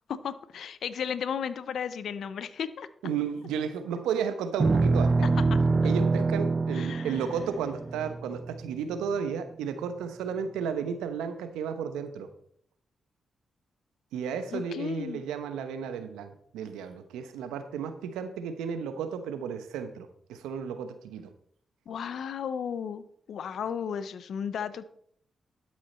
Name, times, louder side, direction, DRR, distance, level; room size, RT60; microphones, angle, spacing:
voice 1, 0.1-2.9 5.2-5.6 6.7-7.2 14.5-15.2 21.9-23.0 23.3-24.8, left 7 dB, 70° left, 14 dB, 0.6 m, -34 dB
voice 2, 3.0-5.3 5.8-12.3 14.1-21.3, right 7 dB, 85° right, 10 dB, 0.9 m, -33 dB
sound 1, 4.6-9.0, right 3 dB, 40° right, 0.4 m, -25 dB
12.0 x 6.3 x 4.3 m, 0.67 s
supercardioid pair, 45°, 0 cm